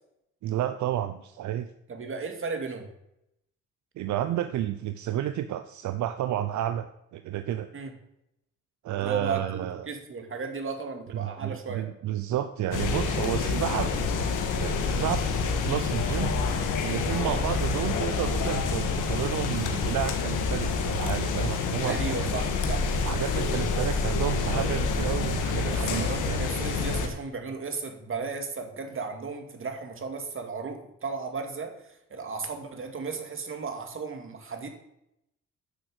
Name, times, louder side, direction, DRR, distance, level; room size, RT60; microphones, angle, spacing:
voice 1, 0.4-1.7 4.0-6.9 7.1-7.7 8.8-9.9 11.1-15.2 15.6-16.3 16.8-22.4 23.0-26.5, right 12 dB, 70° right, 10 dB, 0.7 m, -31 dB
voice 2, 1.9-2.9 7.7-7.9 9.0-11.9 13.4-13.6 17.2-17.4 21.8-22.8 25.7-31.8 32.1-34.7, right 4 dB, 45° right, 5 dB, 2.4 m, -35 dB
sound 1, 12.7-27.1, left 4 dB, 85° left, 1.8 m, -27 dB
10.5 x 6.5 x 8.0 m, 0.81 s
cardioid pair, 90°, 30 cm